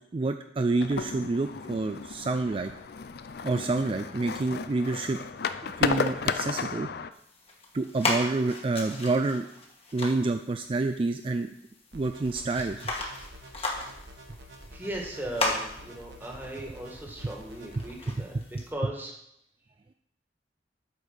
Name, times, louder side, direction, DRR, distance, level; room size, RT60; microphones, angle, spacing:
voice 1, 0.1-2.7 3.4-5.2 5.6-6.9 7.7-9.5 9.9-11.5 11.9-12.9 17.8-17.9 18.2-18.4, right 3 dB, 30° right, 7 dB, 0.3 m, -28 dB
sound 1, 0.8-7.1, left 5 dB, 60° left, 0.5 m, -33 dB
sound 2, 7.1-18.7, left 2 dB, 35° left, 1.5 m, -37 dB
Bass-Middle, 11.9-17.9, right 1 dB, 80° right, 1.3 m, -48 dB
voice 2, 14.7-18.4 18.7-19.1, right 1 dB, 10° right, -1 dB, 1.6 m, -37 dB
8.6 x 5.2 x 6.4 m, 0.76 s
head